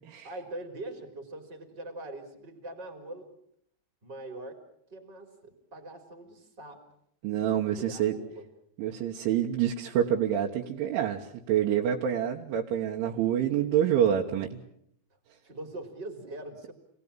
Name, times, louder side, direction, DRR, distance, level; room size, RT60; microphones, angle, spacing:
voice 1, 0.2-3.3 4.0-4.6 4.9-6.8 7.8-8.5 15.4-16.7, right 2 dB, 20° right, 4 dB, 3.9 m, -42 dB
voice 2, 7.2-8.1 8.8-14.6, right 10 dB, 75° right, 0 dB, 3.6 m, -27 dB
28.0 x 19.5 x 8.9 m, 0.72 s
omnidirectional pair, 5.7 m